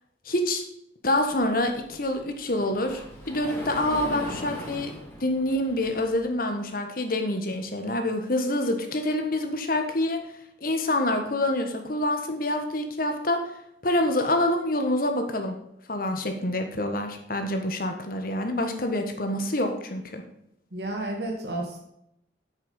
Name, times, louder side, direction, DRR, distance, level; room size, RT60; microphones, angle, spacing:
voice 1, 0.2-0.6 1.0-4.9 5.2-10.2 10.6-13.4 13.8-15.6 15.9-20.2, left 1 dB, 50° left, 5 dB, 1.5 m, -26 dB
Sliding door, 1.3-6.3, left 1 dB, 15° left, 2.3 m, -40 dB
voice 2, 20.7-21.8, right 1 dB, 65° right, 0 dB, 1.8 m, -31 dB
8.7 x 6.6 x 5.6 m, 0.79 s
head